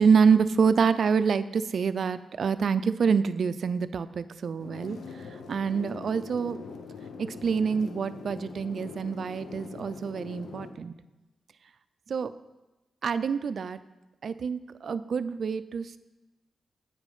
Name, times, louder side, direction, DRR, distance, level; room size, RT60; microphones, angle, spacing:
voice 1, 0.0-6.6 7.2-10.9 12.1-12.3 13.0-13.8 14.2-16.0, right 6 dB, 60° right, 14 dB, 0.3 m, -26 dB
sound 1, 4.6-10.7, left 5 dB, 80° left, 0.7 m, -43 dB
8.3 x 4.9 x 5.4 m, 1.1 s
cardioid pair, 95°, 0 cm